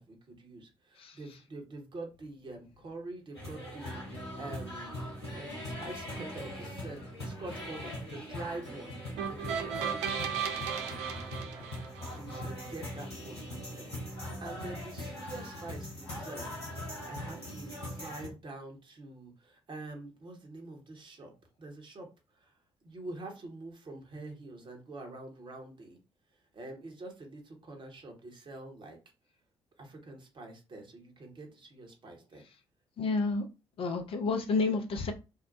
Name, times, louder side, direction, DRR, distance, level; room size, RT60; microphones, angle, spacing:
voice 1, 0.0-8.9 9.2-16.5 17.0-21.3 21.6-22.1 22.4-22.5 22.8-26.0 26.5-29.0 29.8-32.4, right 2 dB, 35° right, 3 dB, 1.0 m, -46 dB
sound 1, 3.3-18.3, left 1 dB, 85° left, 0.8 m, -41 dB
sound 2, 9.2-12.4, right 7 dB, 65° right, 0.4 m, -35 dB
voice 2, 33.0-33.4 33.8-35.1, left 3 dB, 45° left, 5 dB, 0.5 m, -30 dB
2.7 x 2.1 x 2.5 m, 0.29 s
figure-of-eight pair, 40°, 13 cm